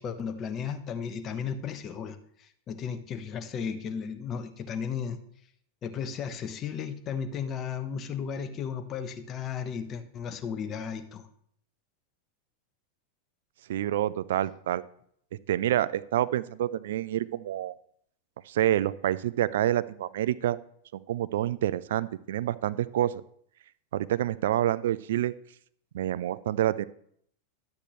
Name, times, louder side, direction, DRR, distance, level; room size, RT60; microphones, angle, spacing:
voice 1, 0.0-5.2 5.8-11.3, left 7 dB, 35° left, 9 dB, 1.0 m, -35 dB
voice 2, 13.7-14.8 15.5-17.7 18.5-20.6 20.9-23.2 23.9-25.3 25.9-26.9, right 12 dB, 70° right, 17 dB, 0.4 m, -27 dB
12.0 x 8.2 x 3.1 m, 0.65 s
hypercardioid pair, 95°, 0 cm